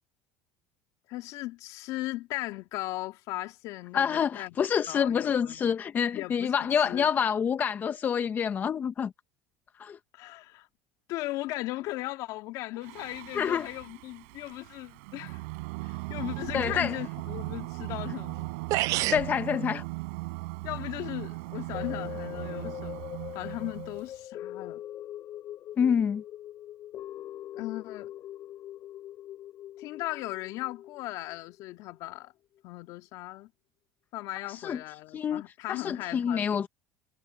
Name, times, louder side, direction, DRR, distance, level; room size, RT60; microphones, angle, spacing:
voice 1, 1.1-4.6 4.9-5.7 6.1-7.1 10.1-10.7 11.1-15.4 15.8-18.5 20.6-24.8 27.6-28.1 29.8-32.3 32.6-33.5 34.1-36.6, left 18 dB, 60° left, 2.5 m, -37 dB
voice 2, 3.9-9.1 9.8-10.0 13.3-13.7 16.5-16.9 19.1-19.8 25.8-26.2 34.5-34.8 35.1-35.4 35.7-36.7, left 7 dB, 25° left, 0.6 m, -27 dB
Singing, 12.8-24.2, right 28 dB, 80° right, 7.9 m, -38 dB
sound 1, 18.3-18.4 18.7-19.3, right 18 dB, 55° right, 0.5 m, -27 dB
sound 2, 21.7-32.1 32.6-32.7, left 12 dB, 45° left, 2.5 m, -42 dB
supercardioid pair, 135°, 7 cm